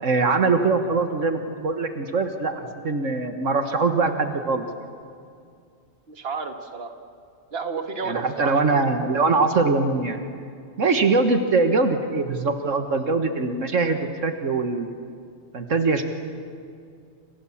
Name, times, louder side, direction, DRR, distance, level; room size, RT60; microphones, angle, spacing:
voice 1, 0.0-4.7 8.0-10.2 10.8-14.9 15.5-16.0, right 3 dB, 75° right, 7 dB, 1.9 m, -22 dB
voice 2, 6.1-6.9 7.5-8.9, right 5 dB, 50° right, 6 dB, 1.9 m, -32 dB
29.0 x 27.0 x 7.3 m, 2.3 s
omnidirectional pair, 1.3 m